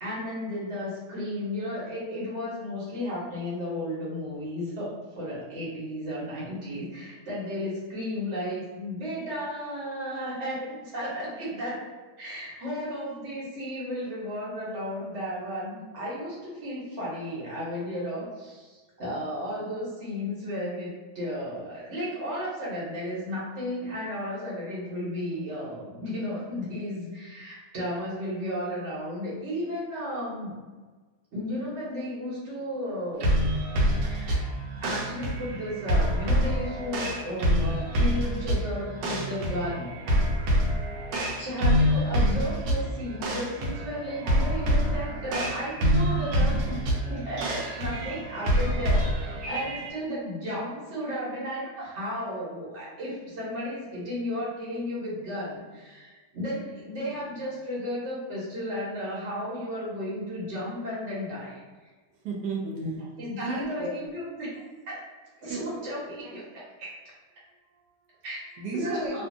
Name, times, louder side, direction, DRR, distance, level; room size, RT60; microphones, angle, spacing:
voice 1, 0.0-11.8 12.2-30.5 31.3-33.3 33.9-34.5 34.7-39.9 41.4-46.8 47.1-61.9 62.8-65.0 65.4-66.9 68.2-68.4 68.8-69.2, equal, 45° right, -7 dB, 1.2 m, -34 dB
sound 1, 33.2-49.9, equal, 75° right, 1.1 m, -26 dB
voice 2, 62.1-62.9 63.2-63.9 65.4-65.7 67.6-68.2 68.6-69.3, right 2 dB, 90° right, -2 dB, 1.2 m, -34 dB
2.6 x 2.5 x 2.5 m, 1.3 s
omnidirectional pair, 1.8 m